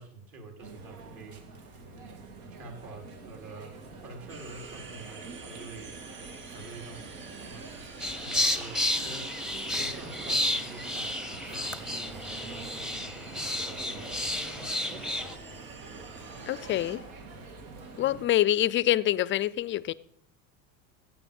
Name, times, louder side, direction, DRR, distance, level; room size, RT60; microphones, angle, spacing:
voice 1, 0.0-1.4 2.4-3.7 4.0-5.9 6.5-9.3 9.7-14.1, right 3 dB, 50° right, 3.9 m, -47 dB
sound 1, 0.6-18.3, right 3 dB, 85° right, 2.5 m, -47 dB
sound 2, 4.3-17.0, right 4 dB, 25° right, 2.8 m, -46 dB
sound 3, 8.0-15.4, left 1 dB, ahead, 0.7 m, -32 dB
voice 2, 16.5-17.0 18.0-19.9, left 13 dB, 30° left, 0.4 m, -26 dB
15.5 x 8.4 x 5.3 m
supercardioid pair, 115°, 41 cm